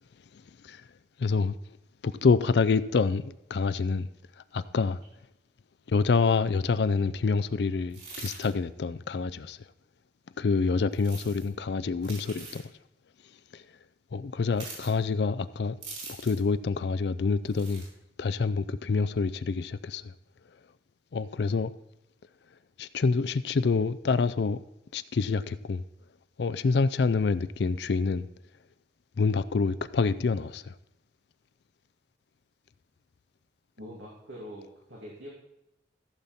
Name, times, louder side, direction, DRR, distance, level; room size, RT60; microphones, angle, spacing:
voice 1, 1.2-1.5 2.0-4.1 4.5-5.0 5.9-9.6 10.4-12.6 13.5-13.6 14.1-15.8 16.2-17.8 18.2-20.0 21.1-21.7 22.8-24.6 24.9-25.8 26.4-28.3 29.2-30.6, left 4 dB, 70° left, 0.4 m, -27 dB
sound 1, 7.9-8.5 10.9-11.5 12.0-12.6 14.5-14.9 15.8-16.5 17.5-17.9, right 3 dB, 40° right, 4.8 m, -43 dB
voice 2, 33.8-35.3, equal, 80° right, 2.5 m, -44 dB
15.0 x 7.3 x 4.1 m
head